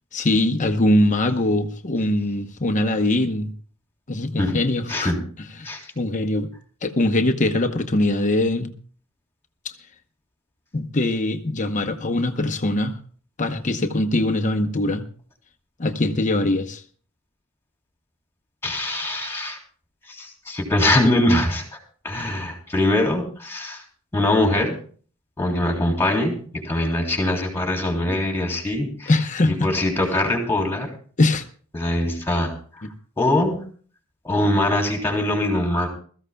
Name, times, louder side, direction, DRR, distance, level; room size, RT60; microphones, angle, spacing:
voice 1, 0.1-3.5 4.1-5.1 5.6-6.5 6.8-8.7 9.6-9.7 10.7-12.9 13.4-15.0 15.8-16.8 29.1-29.5 31.2-31.4, left 1 dB, 35° left, 0.9 m, -22 dB
voice 2, 18.6-19.6 20.1-21.8 22.0-23.8 24.1-24.8 25.4-29.1 29.4-30.9 31.7-32.5 33.2-33.6 34.2-35.9, left 1 dB, 10° left, 3.5 m, -22 dB
22.0 x 14.5 x 2.3 m
head